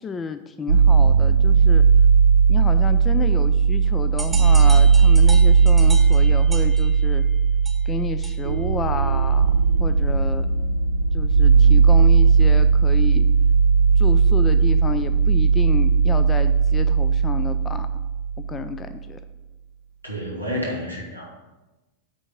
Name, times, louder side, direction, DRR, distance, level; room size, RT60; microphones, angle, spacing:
voice 1, 0.0-1.8 2.5-7.2 7.9-10.5 11.1-13.3 14.0-17.9 18.4-19.2, left 5 dB, 20° left, 11 dB, 0.4 m, -31 dB
sound 1, 0.7-18.6, right 5 dB, 65° right, 0.4 m, -17 dB
sound 2, 4.2-8.7, right 3 dB, 10° right, 0.7 m, -37 dB
voice 2, 20.0-21.4, equal, 90° left, -2 dB, 1.7 m, -30 dB
8.8 x 3.6 x 5.9 m, 1.1 s
figure-of-eight pair, 90°, 0 cm